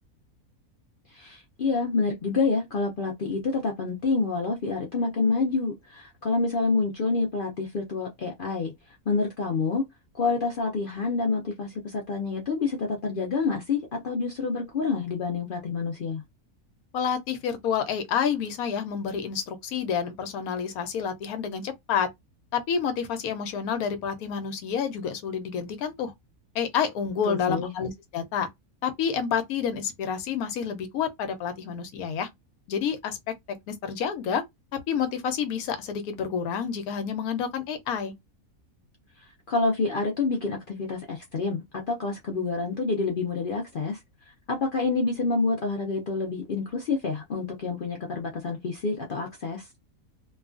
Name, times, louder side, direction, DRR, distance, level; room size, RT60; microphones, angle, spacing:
voice 1, 1.1-9.9 10.1-16.2 27.2-27.7 39.2-44.0 44.5-49.7, left 4 dB, 65° left, 0.5 m, -28 dB
voice 2, 16.9-22.1 22.5-26.1 26.5-28.5 28.8-32.3 32.7-34.4 34.7-38.1, left 7 dB, 80° left, 1.1 m, -29 dB
2.9 x 2.3 x 2.4 m
omnidirectional pair, 1.6 m